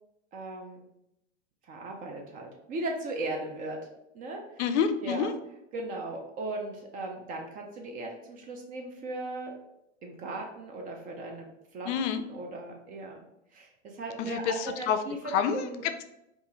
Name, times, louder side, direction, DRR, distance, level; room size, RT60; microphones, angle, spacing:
voice 1, 0.3-0.9 1.6-3.8 4.1-4.4 5.0-5.3 5.7-9.5 10.0-11.5 11.7-13.2 13.5-15.8, right 2 dB, 25° right, 1 dB, 0.3 m, -37 dB
voice 2, 4.6-5.3 11.9-12.2 14.2-15.0 15.3-15.6 15.8-16.0, left 7 dB, 70° left, 10 dB, 0.5 m, -28 dB
2.7 x 2.5 x 3.8 m, 0.83 s
hypercardioid pair, 120°, 38 cm